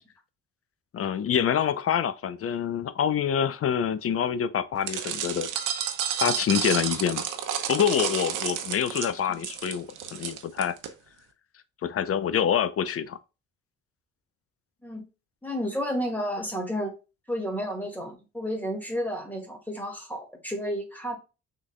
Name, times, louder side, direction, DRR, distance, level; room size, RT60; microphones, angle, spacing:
voice 1, 0.9-5.5 6.2-7.2 7.7-10.8 11.8-13.2, left 8 dB, 50° left, 0.6 m, -26 dB
sound 1, 4.9-10.9, right 9 dB, 85° right, 0.9 m, -31 dB
voice 2, 15.4-16.9 17.3-21.2, equal, 5° left, 2.0 m, -31 dB
6.0 x 3.9 x 2.2 m
cardioid pair, 90°, 30 cm